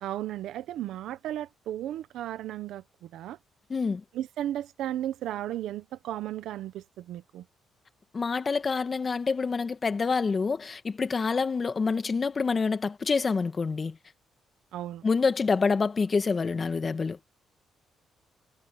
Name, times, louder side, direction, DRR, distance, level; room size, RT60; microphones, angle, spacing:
voice 1, 0.0-3.4 4.1-7.4 14.7-15.1, right 12 dB, 80° right, 1.1 m, -35 dB
voice 2, 3.7-4.0 8.1-14.0 15.0-17.2, left 4 dB, 35° left, 1.7 m, -27 dB
cardioid pair, 90°, 0 cm